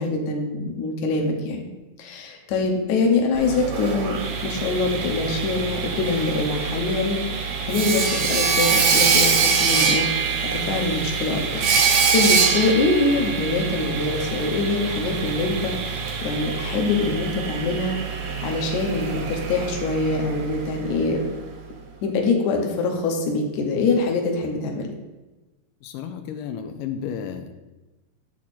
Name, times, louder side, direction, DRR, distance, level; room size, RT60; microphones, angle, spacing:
voice 1, 0.0-1.7 2.0-4.2 4.4-10.1 10.5-18.0 18.4-21.2 22.0-24.9, left 3 dB, 70° left, 2 dB, 2.3 m, -24 dB
Sawing, 3.3-21.2, right 5 dB, 65° right, 1.9 m, -24 dB
voice 2, 25.8-27.5, left 8 dB, 85° left, 6 dB, 2.2 m, -32 dB
7.3 x 6.3 x 4.2 m, 1.1 s
omnidirectional pair, 3.7 m